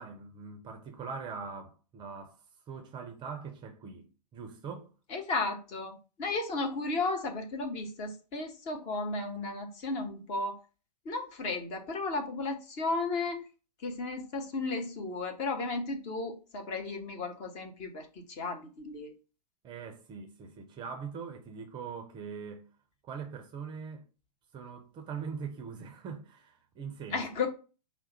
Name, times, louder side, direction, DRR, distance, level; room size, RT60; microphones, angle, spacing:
voice 1, 0.0-4.9 19.6-22.7 23.0-24.1 24.5-27.3, right 5 dB, 20° right, 0.5 m, -42 dB
voice 2, 5.1-10.6 11.0-13.4 13.8-19.1 27.1-27.5, left 3 dB, 35° left, 0.9 m, -34 dB
4.7 x 2.0 x 4.2 m
figure-of-eight pair, 110°, 21 cm